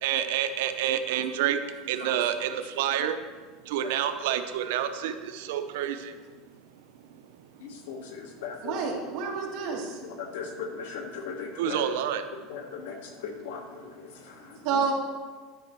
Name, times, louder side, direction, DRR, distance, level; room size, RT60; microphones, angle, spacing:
voice 1, 0.0-1.6 1.9-3.2 3.7-6.1 11.6-12.2, right 10 dB, 75° right, 9 dB, 0.6 m, -28 dB
voice 2, 7.6-8.8 10.2-11.8 12.5-13.0 13.2-13.9, left 6 dB, 80° left, 4 dB, 1.3 m, -37 dB
voice 3, 8.6-10.0 14.6-14.9, right 5 dB, 50° right, -1 dB, 1.6 m, -29 dB
11.0 x 5.4 x 4.5 m, 1.4 s
supercardioid pair, 160°, 0 cm